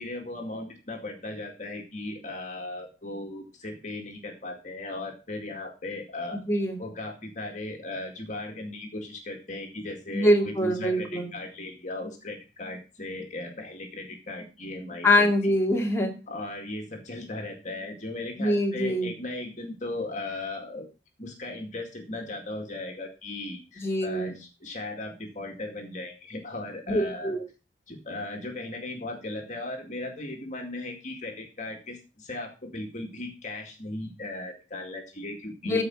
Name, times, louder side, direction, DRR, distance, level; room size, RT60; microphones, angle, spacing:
voice 1, 0.0-6.4 6.8-15.5 16.3-20.9 21.2-27.4 27.9-35.8, left 2 dB, 45° left, 3 dB, 2.1 m, -37 dB
voice 2, 6.5-6.8 10.1-11.3 15.0-16.1 18.4-19.1 23.8-24.3 26.9-27.4 35.6-35.8, left 1 dB, 15° left, 0 dB, 2.3 m, -24 dB
14.5 x 5.1 x 6.3 m, 0.32 s
head